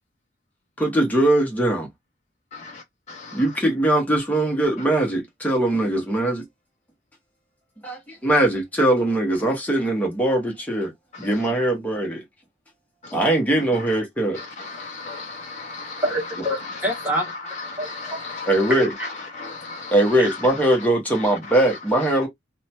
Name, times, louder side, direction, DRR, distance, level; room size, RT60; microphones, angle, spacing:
voice 1, 0.8-1.9 3.3-6.4 7.8-10.9 11.2-12.2 13.1-14.4 18.5-18.9 19.9-22.3, right 1 dB, 10° left, 0.9 m, -21 dB
voice 2, 14.4-16.0 17.7-18.5 19.4-19.9, left 3 dB, 40° left, 0.5 m, -36 dB
voice 3, 16.0-17.2 17.8-18.2 18.7-19.1 20.2-20.3, equal, 10° right, 1.2 m, -26 dB
2.8 x 2.2 x 2.8 m
head